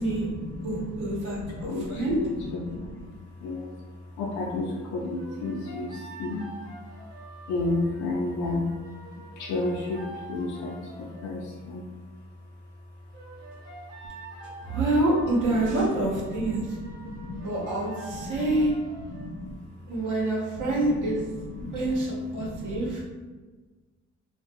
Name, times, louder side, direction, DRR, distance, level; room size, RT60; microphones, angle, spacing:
voice 1, 0.0-3.1 3.4-3.7 4.2-6.4 7.5-8.7 9.4-11.9 15.9-16.0 16.2-17.5 18.1-18.5 19.1-19.6 20.6-21.2 21.5-21.8 22.3-23.0, left 2 dB, 75° left, -3 dB, 0.5 m, -33 dB
voice 2, 0.6-1.4 1.9-2.2 14.6-16.7 17.4-18.7 19.9-21.2 21.6-23.0, right 2 dB, 85° right, -4 dB, 0.9 m, -26 dB
sound 1, 5.1-11.3 13.1-19.3, right 2 dB, 55° right, 1.0 m, -46 dB
2.3 x 2.2 x 2.6 m, 1.3 s
cardioid pair, 90°, 30 cm